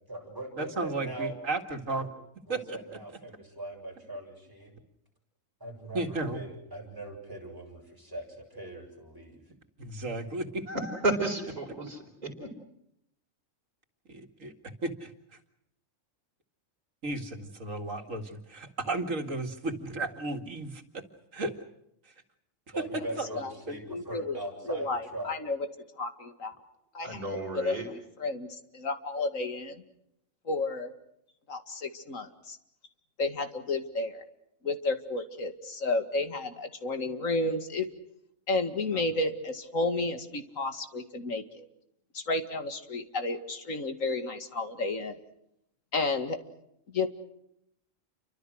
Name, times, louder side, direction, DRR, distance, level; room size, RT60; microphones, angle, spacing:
voice 1, 0.0-1.3 2.0-2.1 2.5-4.8 5.6-9.4 22.7-25.3, right 2 dB, 15° right, 0 dB, 7.2 m, -41 dB
voice 2, 0.6-2.1 2.5-2.8 5.9-6.4 9.8-10.6 14.1-14.5 14.8-15.1 17.0-21.0 21.3-21.6 22.1-22.2 22.8-23.8 38.9-39.1, right 2 dB, 75° right, 5 dB, 2.6 m, -34 dB
voice 3, 10.7-12.5 27.0-27.9, right 2 dB, 30° right, -2 dB, 4.7 m, -32 dB
voice 4, 23.9-24.4 24.7-25.6 26.0-26.6 26.9-27.2 27.5-27.8 28.2-28.5 28.7-29.8 30.5-30.9 31.5-32.6 33.2-34.2 34.6-37.9 38.5-41.7 42.1-45.2 45.9-46.4 46.9-47.1, left 3 dB, 85° left, 8 dB, 2.5 m, -31 dB
29.0 x 24.5 x 6.4 m, 0.78 s
omnidirectional pair, 1.3 m